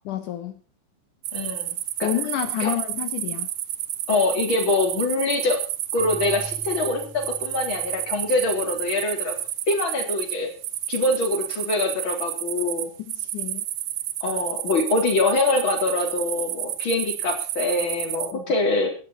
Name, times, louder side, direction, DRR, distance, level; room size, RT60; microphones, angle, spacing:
voice 1, 0.0-0.6 2.0-3.5 13.0-13.6 18.3-18.4, left 12 dB, 80° left, 7 dB, 2.8 m, -29 dB
sound 1, 1.2-18.3, right 13 dB, 85° right, 2.5 m, -30 dB
voice 2, 1.3-2.1 2.6-2.7 4.1-5.6 5.9-9.3 9.7-10.5 10.9-12.9 14.2-18.9, left 2 dB, 40° left, 2 dB, 4.4 m, -24 dB
Marimba xylophone / Wood, 6.0-8.8, right 2 dB, 50° right, 6.2 m, -41 dB
18.0 x 13.0 x 4.3 m, 0.38 s
omnidirectional pair, 3.6 m